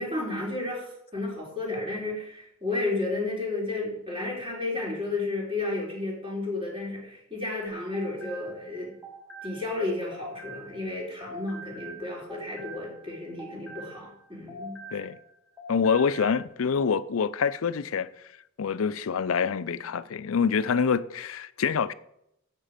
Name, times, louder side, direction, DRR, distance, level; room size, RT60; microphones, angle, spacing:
voice 1, 0.0-8.9 9.4-14.8, left 2 dB, 25° right, 3.8 m, -32 dB
sound 1, 7.7-10.9 11.2-15.3 15.6-16.4, right 2 dB, ahead, 2.2 m, -44 dB
voice 2, 15.7-18.1 18.6-21.9, left 6 dB, 85° left, 0.5 m, -26 dB
9.0 x 7.5 x 5.1 m
head